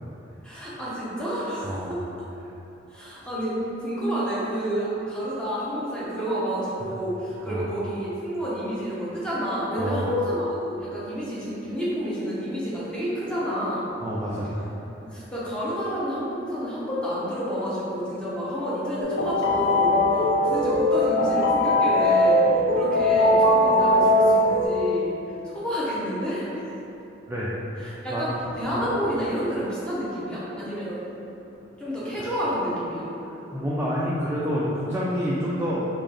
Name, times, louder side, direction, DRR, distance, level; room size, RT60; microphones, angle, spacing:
voice 1, 0.4-2.0 2.9-13.8 15.0-25.1 25.4-26.7 27.8-31.1 31.8-33.1, equal, 5° left, -9 dB, 0.9 m, -29 dB
voice 2, 1.6-2.0 7.5-7.7 9.8-10.1 14.0-14.7 27.3-28.4 32.2-32.3 33.2-35.8, equal, 10° right, -8 dB, 0.3 m, -28 dB
sound 1, 19.0-24.6, left 1 dB, 65° left, 0.6 m, -20 dB
3.8 x 2.5 x 3.3 m, 2.9 s
head